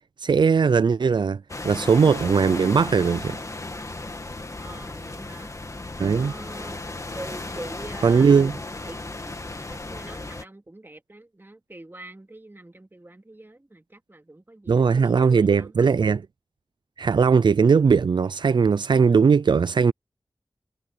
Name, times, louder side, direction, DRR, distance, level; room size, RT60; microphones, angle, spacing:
voice 1, 0.2-3.4 6.0-6.3 8.0-8.5 14.7-16.2 17.0-19.9, right 5 dB, 75° right, 0.4 m, -19 dB
sound 1, 1.5-10.4, left 2 dB, 40° left, 2.2 m, -35 dB
voice 2, 4.6-5.5 6.1-6.8 7.1-8.5 8.9-9.4 9.7-15.9, right 1 dB, 25° right, 2.6 m, -44 dB
wide cardioid pair, 60°, 8 cm